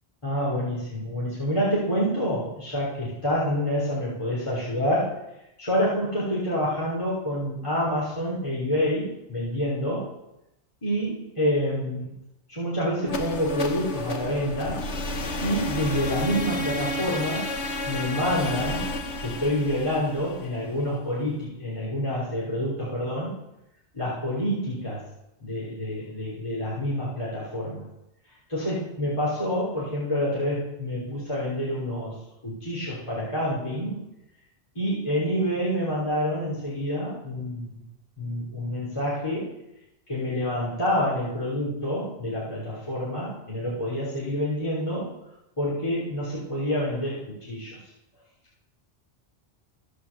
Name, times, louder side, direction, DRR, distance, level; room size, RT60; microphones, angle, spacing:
voice 1, 0.2-5.2 5.6-10.1 10.8-12.1 12.5-14.8 15.4-17.5 17.9-18.8 19.2-23.3 23.9-25.0 25.4-27.9 28.5-32.2 32.4-34.0 34.8-37.8 38.2-39.5 40.1-45.1 45.6-47.8, equal, 25° left, -8 dB, 3.5 m, -27 dB
sound 1, 13.0-21.0, left 1 dB, 80° left, 1.3 m, -31 dB
15.5 x 5.2 x 7.1 m, 0.90 s
omnidirectional pair, 1.1 m